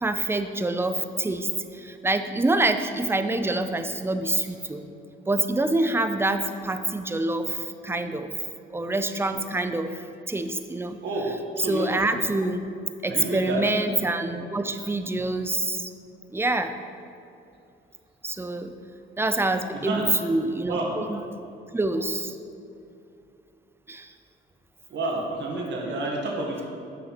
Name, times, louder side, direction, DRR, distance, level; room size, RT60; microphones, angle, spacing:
voice 1, 0.0-4.9 5.3-8.3 8.7-11.0 11.6-12.6 13.0-15.9 16.3-16.7 18.2-18.7 19.2-21.2 21.7-22.4 23.9-24.1, right 2 dB, 10° right, 8 dB, 0.6 m, -26 dB
voice 2, 11.0-11.9 13.0-13.6 19.7-20.1 20.7-20.9 24.9-26.7, right 2 dB, 65° right, -1 dB, 2.1 m, -29 dB
8.7 x 6.1 x 5.9 m, 2.7 s
cardioid pair, 90°, 20 cm